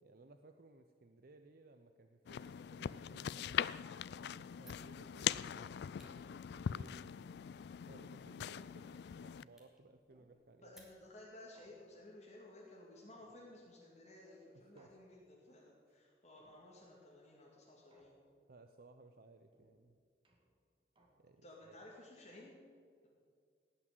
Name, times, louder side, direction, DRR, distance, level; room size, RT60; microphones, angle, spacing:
voice 1, 0.0-3.8 4.2-7.1 7.9-10.8 14.5-15.0 18.5-20.0 21.2-21.8, right 2 dB, 60° right, 7 dB, 0.7 m, -61 dB
sound 1, 2.3-9.4, left 9 dB, 65° left, 0.3 m, -41 dB
Fire, 4.6-11.4, right 1 dB, ahead, 2.6 m, -69 dB
sound 2, 7.2-7.7 8.5-9.2 10.1-10.9 11.5-12.3 13.2-13.9 14.8-15.5 16.4-17.0 17.9-18.6 19.5-21.6, right 1 dB, 30° right, 2.0 m, -72 dB
voice 2, 10.6-18.2 21.4-22.6 23.0-23.1, left 1 dB, 40° left, -4 dB, 2.2 m, -56 dB
18.0 x 6.2 x 9.2 m, 2.1 s
head